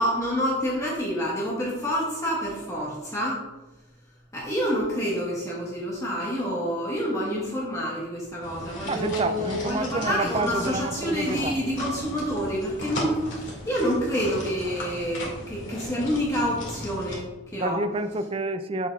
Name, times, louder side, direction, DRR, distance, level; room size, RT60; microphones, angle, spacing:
voice 1, 0.0-3.4 4.3-17.8, equal, 15° left, -5 dB, 1.3 m, -28 dB
sound 1, 8.4-17.2, left 1 dB, 65° left, 2.2 m, -37 dB
voice 2, 8.9-11.6 17.6-18.9, right 2 dB, 25° right, 9 dB, 0.3 m, -29 dB
7.6 x 7.0 x 2.4 m, 1.1 s
head